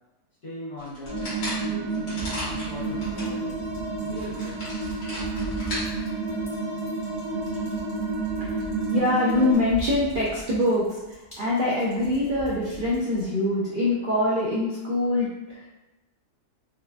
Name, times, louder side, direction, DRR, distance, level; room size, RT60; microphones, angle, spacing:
voice 1, 0.4-3.6 4.0-4.7, left 1 dB, 80° left, -9 dB, 2.0 m, -40 dB
sound 1, 0.8-3.3 3.8-3.9 4.2-5.9, left 1 dB, 60° left, 1.9 m, -36 dB
sound 2, 1.1-9.5, right 3 dB, 30° right, 1.4 m, -30 dB
sound 3, 2.2-13.3, right 2 dB, 25° left, 1.3 m, -42 dB
voice 2, 8.9-15.7, left 1 dB, 85° right, -6 dB, 0.4 m, -24 dB
4.4 x 2.5 x 2.3 m, 1.0 s
omnidirectional pair, 1.7 m